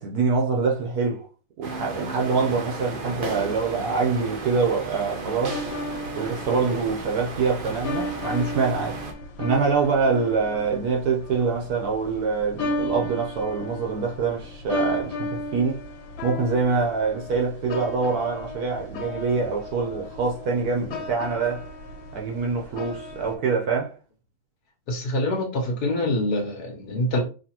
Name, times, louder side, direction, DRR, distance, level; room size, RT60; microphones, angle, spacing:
voice 1, 0.0-1.3 1.6-5.6 6.2-9.0 9.4-15.8 16.2-21.7 22.1-23.9, right 4 dB, 60° right, 1.1 m, -25 dB
sound 1, 1.6-9.1, right 3 dB, 80° right, 0.4 m, -34 dB
sound 2, 5.5-23.4, left 1 dB, 80° left, 1.7 m, -35 dB
voice 2, 24.9-27.2, left 1 dB, 55° left, 1.5 m, -25 dB
5.6 x 3.0 x 2.9 m
omnidirectional pair, 2.1 m